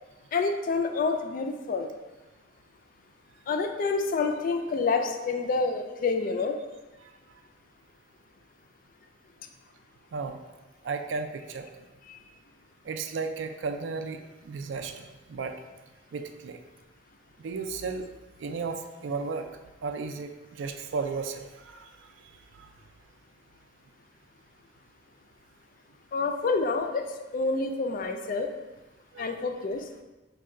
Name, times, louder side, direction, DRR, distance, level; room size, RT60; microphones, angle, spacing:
voice 1, 0.3-1.9 3.5-6.6 12.1-12.2 26.1-27.1 27.3-28.5 29.2-29.8, left 4 dB, 45° left, 6 dB, 0.3 m, -28 dB
voice 2, 10.8-11.7 12.8-14.2 14.4-15.5 16.1-16.6 17.4-18.1 18.4-19.5 19.8-21.9 22.6-22.7 29.1-29.3, right 4 dB, 70° right, 6 dB, 0.4 m, -34 dB
5.2 x 2.2 x 3.7 m, 1.1 s
head